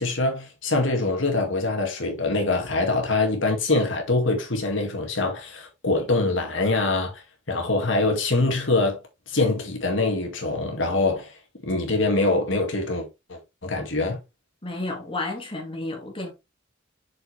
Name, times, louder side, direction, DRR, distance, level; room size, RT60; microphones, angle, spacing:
voice 1, 0.0-9.0 9.3-11.3 11.7-14.2, left 2 dB, 75° left, 2.1 m, -24 dB
voice 2, 14.6-16.3, left 2 dB, 30° left, 2.2 m, -31 dB
6.5 x 5.8 x 3.2 m
head